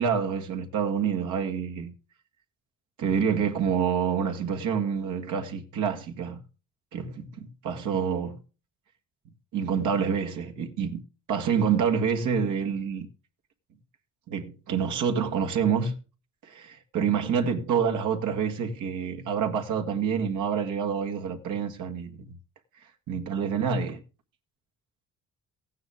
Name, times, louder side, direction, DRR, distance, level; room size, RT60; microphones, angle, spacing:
voice 1, 0.0-1.9 3.0-6.4 6.9-8.4 9.5-11.0 11.3-13.1 14.3-16.0 16.4-22.4 23.1-24.0, right 7 dB, 90° right, 1.7 m, -27 dB
15.0 x 9.5 x 3.5 m
cardioid pair, 90°, 30 cm